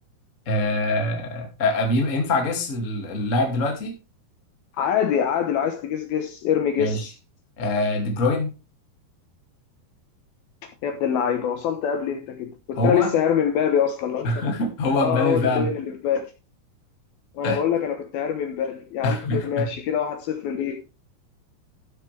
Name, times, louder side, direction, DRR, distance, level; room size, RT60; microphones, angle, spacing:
voice 1, 0.5-4.0 6.8-7.1 7.6-8.5 12.7-13.1 14.2-15.7 17.4-17.6 19.0-19.7, left 2 dB, 25° left, 1.9 m, -24 dB
voice 2, 4.8-7.1 10.8-14.3 14.9-16.2 17.3-20.8, left 8 dB, 70° left, 2.7 m, -24 dB
12.5 x 8.1 x 3.4 m
omnidirectional pair, 4.9 m